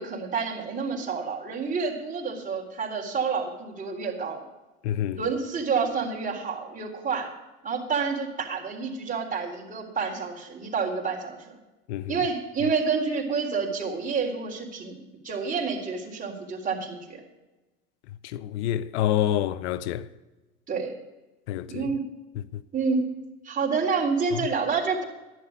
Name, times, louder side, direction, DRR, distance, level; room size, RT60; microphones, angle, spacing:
voice 1, 0.0-4.4 5.1-7.3 7.6-11.6 12.1-17.2 20.7-20.9 21.7-22.1 22.7-23.0 23.4-25.0, right 5 dB, 25° right, 3.8 m, -28 dB
voice 2, 4.8-5.2 11.9-12.2 18.2-20.1 21.5-21.9, left 11 dB, 80° left, 0.7 m, -27 dB
12.0 x 11.0 x 5.2 m
supercardioid pair, 100°, 34 cm